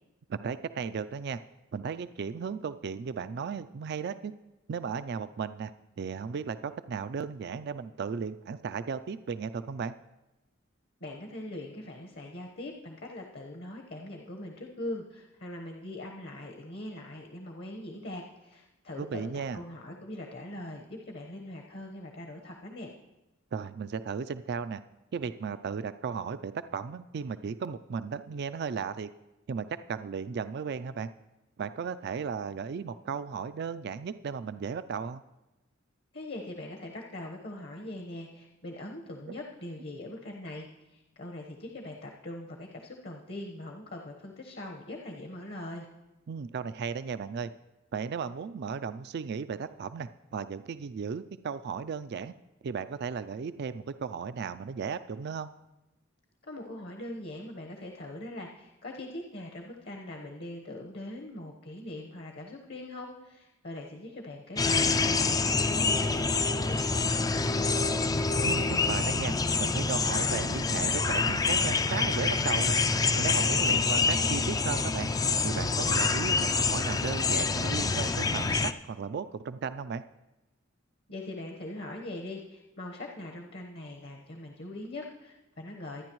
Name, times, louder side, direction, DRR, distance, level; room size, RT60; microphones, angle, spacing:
voice 1, 0.3-1.4 1.7-4.3 4.7-5.7 6.0-9.9 19.0-19.6 23.5-24.8 25.1-29.1 29.5-31.1 31.6-35.2 39.3-39.4 46.3-47.5 47.9-52.3 52.6-55.5 68.4-69.3 69.6-72.8 73.2-75.1 75.4-80.0, right 6 dB, 55° right, 12 dB, 0.4 m, -35 dB
voice 2, 11.0-23.0 36.1-45.9 56.4-67.6 81.1-86.0, left 1 dB, 55° left, 1 dB, 1.1 m, -42 dB
sound 1, 64.6-78.7, left 4 dB, 20° left, 0.4 m, -26 dB
24.0 x 9.6 x 3.1 m, 0.99 s
head